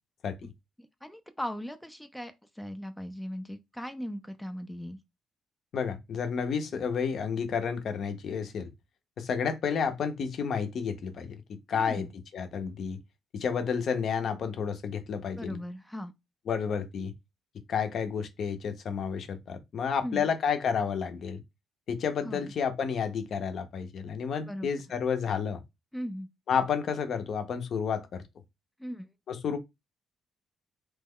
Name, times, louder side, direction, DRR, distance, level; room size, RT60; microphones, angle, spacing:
voice 1, 0.8-5.0 11.7-12.1 15.4-16.1 20.0-20.3 22.2-22.5 24.5-24.7 25.9-26.3 28.8-29.1, equal, 5° left, 0.3 m, -38 dB
voice 2, 5.7-8.7 9.2-11.4 11.7-12.1 12.3-13.0 13.3-15.6 16.5-17.1 17.7-21.4 21.9-25.6 26.5-28.2 29.3-29.6, left 6 dB, 60° left, 0.6 m, -30 dB
3.0 x 2.2 x 3.5 m
cardioid pair, 100°, 0 cm